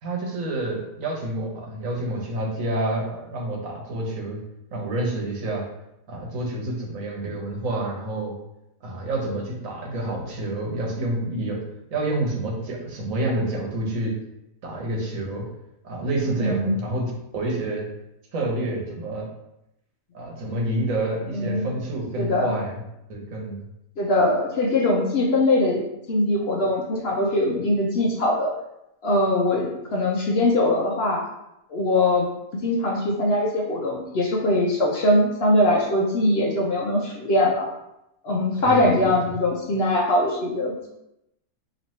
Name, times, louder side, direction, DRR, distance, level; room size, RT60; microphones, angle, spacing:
voice 1, 0.0-4.4 4.7-5.6 6.1-8.3 8.8-11.6 11.9-14.2 14.6-15.5 15.8-17.1 17.3-17.9 18.3-19.3 20.1-22.8 23.1-23.6 38.6-39.0, right 1 dB, 70° right, -2 dB, 1.3 m, -28 dB
voice 2, 16.4-16.7 21.3-21.6 22.2-22.5 24.0-28.5 29.0-31.2 31.7-32.3 32.6-37.7 38.2-40.9, left 1 dB, 60° left, -2 dB, 0.7 m, -22 dB
3.1 x 3.0 x 4.0 m, 0.85 s
omnidirectional pair, 1.5 m